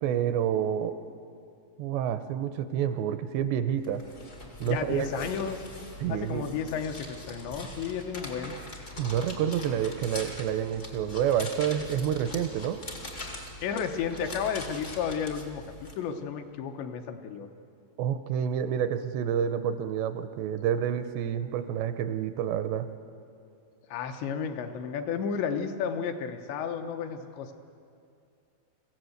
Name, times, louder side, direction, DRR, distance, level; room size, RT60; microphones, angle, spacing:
voice 1, 0.0-1.0 1.8-4.1 4.6-5.3 6.0-6.5 9.0-12.8 18.0-22.9, right 9 dB, 80° right, 10 dB, 2.8 m, -28 dB
sound 1, 3.8-15.9, left 2 dB, 65° left, 0.7 m, -42 dB
voice 2, 4.6-5.6 6.1-8.6 13.6-17.5 23.9-27.5, left 7 dB, 80° left, 6 dB, 3.2 m, -32 dB
23.0 x 15.5 x 7.9 m, 2.5 s
omnidirectional pair, 5.2 m